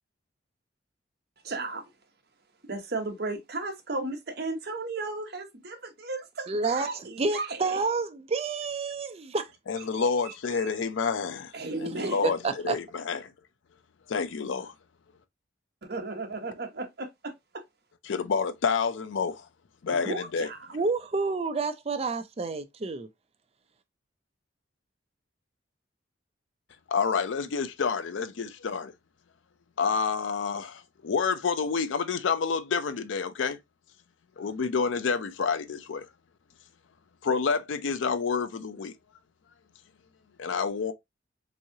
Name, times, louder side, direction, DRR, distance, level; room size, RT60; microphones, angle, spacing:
voice 1, 1.4-1.9 2.7-7.8 10.0-10.8 11.5-12.3 15.8-17.6 19.9-20.7, right 2 dB, 55° right, 0.9 m, -35 dB
voice 2, 6.5-9.5 12.4-12.8 20.7-23.1, right 4 dB, 30° right, 0.4 m, -29 dB
voice 3, 9.7-11.5 11.8-13.3 14.1-14.7 18.1-19.5 19.8-20.5 26.9-28.9 29.8-33.6 34.4-36.1 37.2-38.9 40.4-40.9, left 5 dB, 80° left, 0.5 m, -28 dB
3.6 x 3.1 x 2.7 m
head